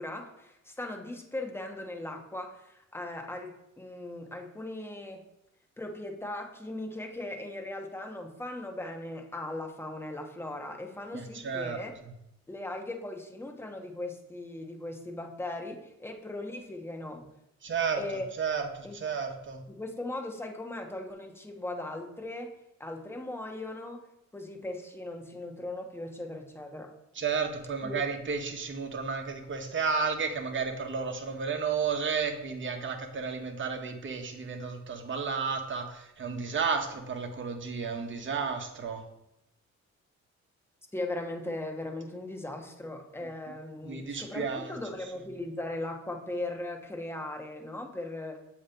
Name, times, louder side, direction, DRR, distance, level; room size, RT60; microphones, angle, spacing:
voice 1, 0.0-3.5 3.8-5.2 5.8-11.9 12.5-17.3 17.9-18.3 18.8-19.0 19.7-22.5 22.8-24.0 24.3-26.9 27.8-28.0 40.9-48.4, left 2 dB, 10° left, 2 dB, 1.0 m, -38 dB
voice 2, 11.1-11.8 17.6-18.0 18.4-19.6 27.2-39.0 43.8-44.7, right 5 dB, 40° right, 4 dB, 1.1 m, -32 dB
7.1 x 2.9 x 5.1 m, 0.84 s
cardioid pair, 90°, 30 cm